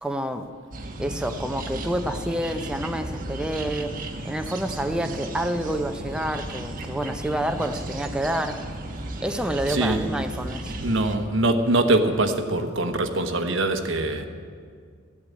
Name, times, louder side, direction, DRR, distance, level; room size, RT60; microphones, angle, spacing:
voice 1, 0.0-0.5 1.0-4.0 4.2-8.6 9.2-10.8, right 1 dB, 5° right, 6 dB, 0.6 m, -28 dB
sound 1, 0.7-11.2, right 1 dB, 40° right, 1.2 m, -35 dB
voice 2, 9.7-10.1 10.8-14.3, right 2 dB, 65° right, 7 dB, 1.1 m, -23 dB
14.5 x 8.5 x 8.4 m, 2.1 s
head